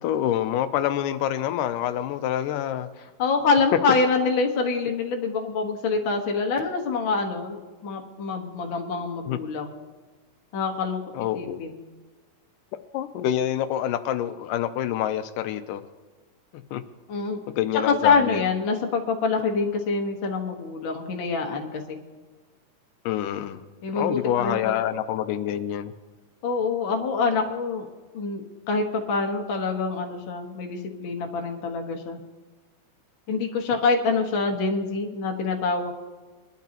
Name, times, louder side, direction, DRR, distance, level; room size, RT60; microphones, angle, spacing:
voice 1, 0.0-2.9 9.3-9.4 11.1-11.6 12.9-15.8 16.5-16.8 17.6-18.4 23.1-23.6 23.9-25.9, left 11 dB, 85° left, 11 dB, 2.2 m, -27 dB
voice 2, 3.2-9.7 10.5-11.0 11.3-11.8 17.1-17.4 17.7-22.0 23.8-24.8 26.4-27.9 28.1-32.2 33.3-35.9, left 4 dB, 50° left, 2 dB, 1.6 m, -25 dB
22.0 x 12.0 x 2.9 m, 1.4 s
omnidirectional pair, 3.8 m